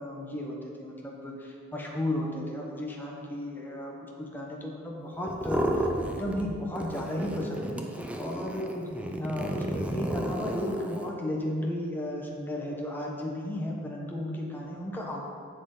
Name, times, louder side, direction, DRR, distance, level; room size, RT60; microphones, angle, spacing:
voice 1, 0.0-5.6 6.0-7.7 8.2-8.9 9.2-15.2, left 1 dB, 10° left, -2 dB, 1.0 m, -34 dB
sound 1, 5.3-6.5 6.8-11.1, right 1 dB, 5° right, 0.6 m, -32 dB
10.5 x 7.5 x 3.9 m, 2.2 s
head